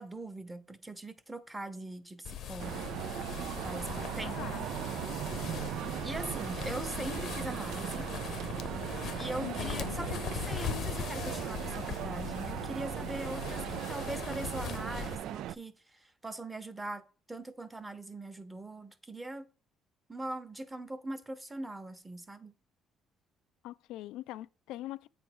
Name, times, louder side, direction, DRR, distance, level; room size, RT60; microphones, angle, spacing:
voice 1, 0.0-2.9 3.6-4.5 5.5-5.6 6.0-8.1 9.2-17.0 17.3-19.5 20.1-22.5, right 2 dB, 10° right, 0.9 m, -41 dB
sound 1, 2.2-15.2, left 9 dB, 55° left, 0.7 m, -40 dB
sound 2, 2.6-15.5, right 12 dB, 70° right, 0.3 m, -38 dB
voice 2, 4.0-4.6 9.4-9.9 23.6-25.1, left 14 dB, 80° left, 0.3 m, -42 dB
8.6 x 3.3 x 6.1 m
cardioid pair, 140°, 0 cm